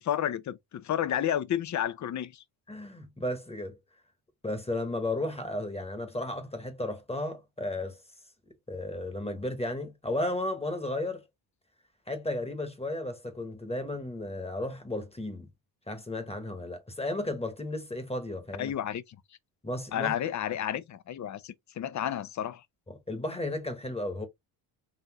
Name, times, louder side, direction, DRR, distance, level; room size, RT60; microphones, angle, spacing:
voice 1, 0.0-2.4 18.6-19.2 19.9-22.6, left 10 dB, 40° left, 0.5 m, -31 dB
voice 2, 2.7-3.8 4.4-8.0 8.7-11.3 12.1-15.5 15.9-18.7 19.6-20.1 22.9-24.3, left 1 dB, 15° left, 1.2 m, -34 dB
4.1 x 2.6 x 2.9 m
supercardioid pair, 80°, 46 cm